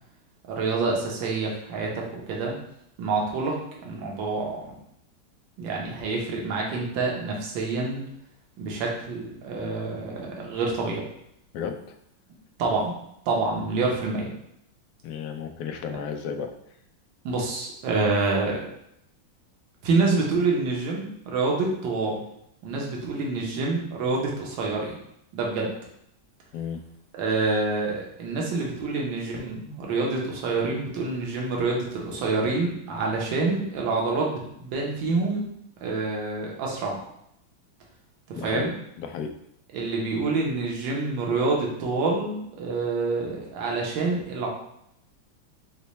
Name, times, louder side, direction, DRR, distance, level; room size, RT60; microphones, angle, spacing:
voice 1, 0.5-2.5 3.0-4.6 5.6-8.0 8.6-11.0 12.6-12.9 13.3-14.3 15.9-16.0 17.2-18.7 19.8-22.2 22.6-24.9 25.3-25.7 27.1-35.5 35.8-37.0 38.3-38.7 39.7-44.5, right 3 dB, 70° right, -1 dB, 1.6 m, -27 dB
voice 2, 11.5-11.9 15.0-16.6 26.5-26.8 38.3-38.7 39.0-39.3, left 7 dB, 85° left, 6 dB, 0.8 m, -33 dB
5.1 x 2.2 x 4.1 m, 0.76 s
omnidirectional pair, 2.2 m